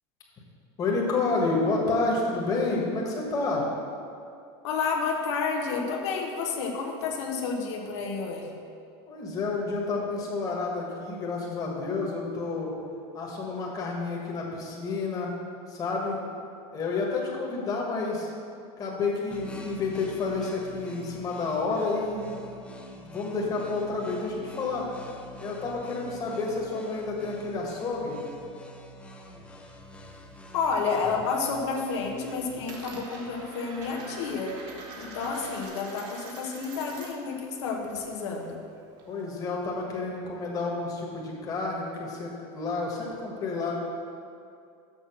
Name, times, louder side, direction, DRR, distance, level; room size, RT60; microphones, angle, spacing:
voice 1, 0.8-3.7 9.1-12.7 13.1-15.3 15.7-16.2 16.7-18.3 18.8-22.4 22.9-24.9 25.4-28.2 39.1-43.8, left 3 dB, 25° left, -2 dB, 1.4 m, -30 dB
voice 2, 4.6-8.5 30.5-34.5 35.0-38.6, left 5 dB, 85° left, 0 dB, 1.1 m, -30 dB
sound 1, 19.3-35.7, equal, 10° left, 0.6 m, -46 dB
Coin (dropping), 29.8-31.0 31.3-31.8 32.0-37.3 37.6-39.3, right 3 dB, 55° right, 1.6 m, -45 dB
6.8 x 6.0 x 5.9 m, 2.5 s
supercardioid pair, 155°, 14 cm